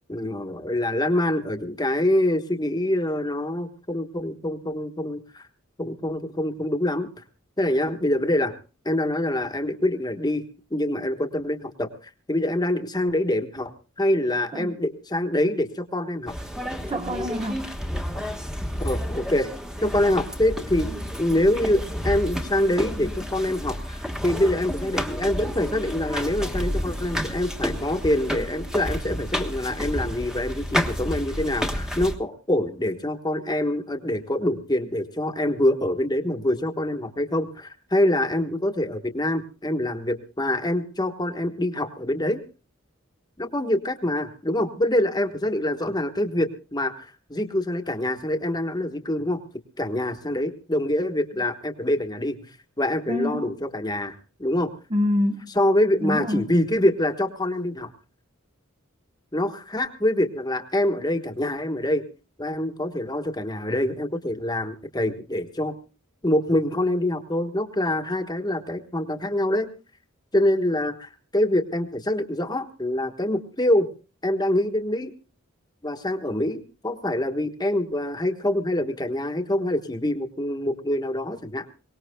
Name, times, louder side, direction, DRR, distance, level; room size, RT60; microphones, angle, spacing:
voice 1, 0.1-5.5 5.8-7.1 7.6-8.5 8.8-10.4 10.7-11.9 12.3-13.7 14.0-16.3 18.8-19.5 19.8-20.9 21.2-42.4 43.4-49.4 49.8-52.4 52.8-54.7 55.5-57.9 59.3-62.0 62.4-65.7 66.2-69.7 70.3-73.9 74.2-75.1 75.8-81.7, left 1 dB, 20° left, 8 dB, 1.3 m, -25 dB
sound 1, 16.3-32.1, equal, 5° right, 1.2 m, -30 dB
voice 2, 16.9-17.7 53.1-53.5 54.9-55.5 56.0-56.5, left 1 dB, 25° right, 7 dB, 1.0 m, -26 dB
23.5 x 19.0 x 2.2 m, 0.34 s
head